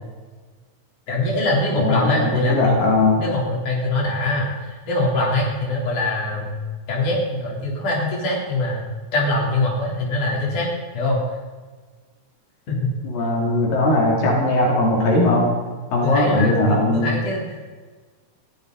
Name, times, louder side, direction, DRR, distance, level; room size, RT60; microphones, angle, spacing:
voice 1, 1.1-2.8 3.2-6.6 6.9-8.8 9.1-10.7 10.9-11.2 12.7-12.9 16.0-17.7, left 2 dB, 65° left, -3 dB, 5.3 m, -23 dB
voice 2, 1.8-3.3 13.0-15.5 15.9-17.2, left 2 dB, 90° left, -2 dB, 4.9 m, -19 dB
22.5 x 15.5 x 4.1 m, 1.4 s
omnidirectional pair, 3.8 m